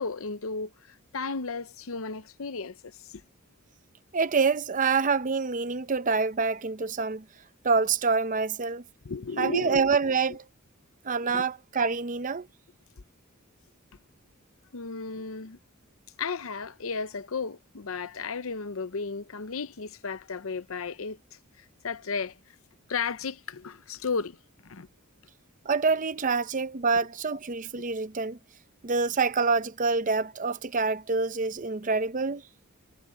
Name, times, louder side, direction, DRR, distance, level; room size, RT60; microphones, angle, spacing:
voice 1, 0.0-3.2 9.0-9.9 11.3-11.4 14.7-15.6 16.2-22.4 22.9-24.4 24.6-24.9, left 5 dB, 70° left, 0.8 m, -34 dB
voice 2, 4.1-7.2 7.6-8.8 9.4-10.4 11.0-12.5 25.7-28.4 28.8-32.4, right 4 dB, 40° right, 0.7 m, -26 dB
head